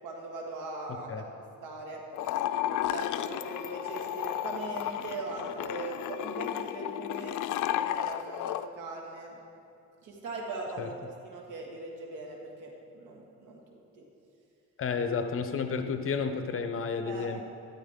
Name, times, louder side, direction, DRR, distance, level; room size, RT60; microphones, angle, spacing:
voice 1, 0.0-2.0 2.9-7.4 7.7-9.4 10.0-10.9 11.2-14.0 17.1-17.3, right 3 dB, 85° right, 0 dB, 2.1 m, -40 dB
voice 2, 0.9-1.2 10.8-10.9 14.8-17.4, left 5 dB, 45° left, 8 dB, 0.9 m, -31 dB
sound 1, 2.1-8.7, left 12 dB, 75° left, 0.5 m, -33 dB
12.5 x 12.0 x 3.7 m, 2.6 s
cardioid pair, 90°, 30 cm